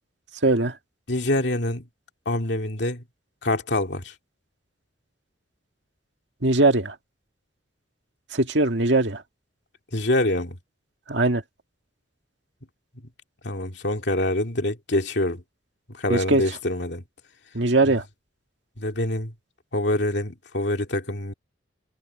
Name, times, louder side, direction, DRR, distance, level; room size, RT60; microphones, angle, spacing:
voice 1, 0.4-0.8 6.4-7.0 8.3-9.2 11.1-11.4 16.1-16.4 17.5-18.0, right 2 dB, 70° right, 2.0 m, -20 dB
voice 2, 1.1-1.9 2.3-3.0 3.4-4.1 9.9-10.6 13.4-15.4 15.9-17.0 17.8-18.0 18.8-19.3 19.7-21.3, left 1 dB, 65° left, 2.4 m, -25 dB
head